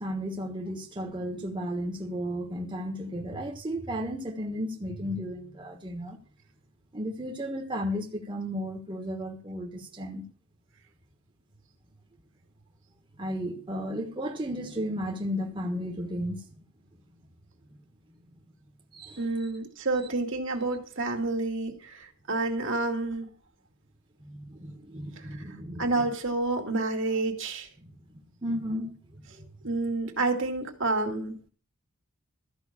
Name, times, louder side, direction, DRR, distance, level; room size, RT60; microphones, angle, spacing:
voice 1, 0.0-6.2 6.9-10.3 13.2-16.5 18.9-19.3 24.2-26.1 27.8-29.5, equal, 25° right, 1.4 m, -34 dB
voice 2, 19.2-23.3 25.8-27.7 29.6-31.4, right 3 dB, 65° right, 2.3 m, -29 dB
13.5 x 5.6 x 8.5 m
head